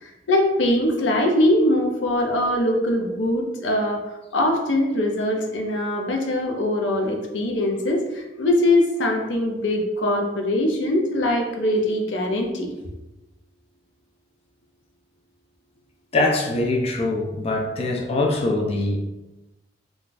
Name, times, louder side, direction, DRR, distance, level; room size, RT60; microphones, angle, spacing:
voice 1, 0.0-4.0 4.3-12.7, left 1 dB, 85° left, 2 dB, 0.6 m, -22 dB
voice 2, 16.1-19.1, left 2 dB, 35° left, 0 dB, 0.4 m, -23 dB
2.5 x 2.3 x 3.8 m, 1.0 s
head